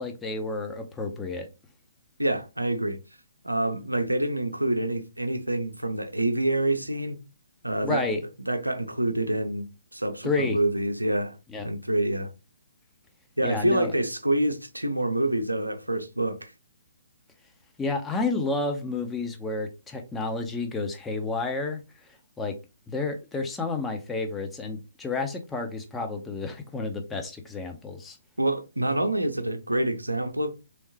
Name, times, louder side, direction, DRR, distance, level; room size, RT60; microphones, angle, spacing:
voice 1, 0.0-1.5 7.8-8.2 10.2-10.6 11.5-11.7 13.4-13.9 17.8-21.8 22.4-22.6 22.9-28.2, left 3 dB, 10° left, 0.6 m, -30 dB
voice 2, 2.2-3.0 3.4-7.2 7.6-8.1 8.5-9.7 9.9-11.3 11.6-12.3 13.4-16.5 28.4-30.5, right 1 dB, 85° right, 0.6 m, -27 dB
3.5 x 3.2 x 2.9 m
figure-of-eight pair, 130°, 0 cm